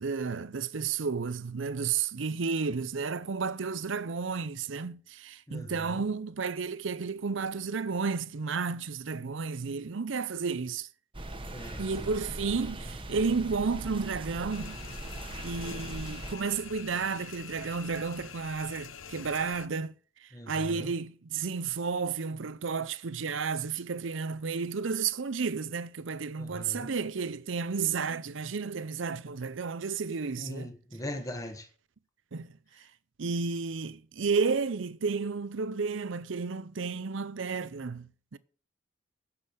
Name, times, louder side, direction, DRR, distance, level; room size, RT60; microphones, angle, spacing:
voice 1, 0.0-10.9 11.8-14.8 15.4-19.9 20.5-30.7 32.3-32.5 33.2-38.4, right 5 dB, 65° right, 0.6 m, -32 dB
voice 2, 5.5-6.0 11.5-12.1 20.3-20.9 26.4-26.9 30.4-31.7, left 1 dB, 15° left, 1.4 m, -40 dB
sound 1, 11.1-16.4, right 1 dB, 25° right, 1.2 m, -40 dB
sound 2, 14.5-19.7, left 7 dB, 75° left, 0.8 m, -45 dB
10.0 x 7.4 x 6.6 m
head